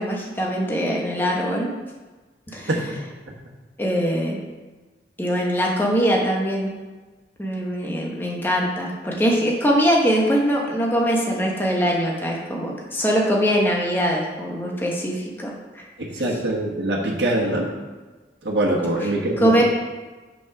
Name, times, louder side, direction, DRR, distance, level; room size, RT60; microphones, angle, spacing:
voice 1, 0.0-1.7 2.5-2.7 3.8-4.4 5.2-6.7 7.4-15.5 19.4-19.6, equal, 10° left, -2 dB, 1.1 m, -22 dB
voice 2, 16.0-17.7 18.4-19.5, right 1 dB, 80° right, -4 dB, 1.3 m, -23 dB
6.2 x 5.5 x 5.8 m, 1.3 s
head